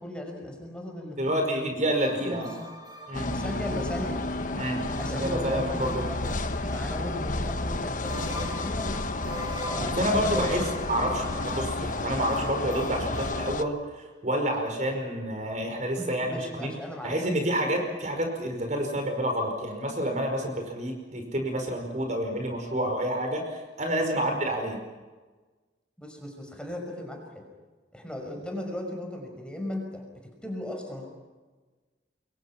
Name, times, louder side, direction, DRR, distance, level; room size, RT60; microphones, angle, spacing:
voice 1, 0.0-1.4 2.1-2.5 3.3-4.3 4.9-6.4 6.7-8.9 9.6-10.8 16.0-17.2 24.2-24.4 26.0-27.5 27.9-30.1 30.4-31.1, left 1 dB, 5° left, 2 dB, 5.7 m, -37 dB
voice 2, 1.2-2.5 3.1-3.3 4.5-6.0 10.0-10.6 10.9-16.7 17.0-24.8, equal, 40° right, 4 dB, 5.2 m, -29 dB
sound 1, 1.8-13.5, equal, 25° right, 4.8 m, -43 dB
sound 2, 3.1-13.6, left 2 dB, 45° left, 1.3 m, -31 dB
29.0 x 23.0 x 5.9 m, 1.3 s
head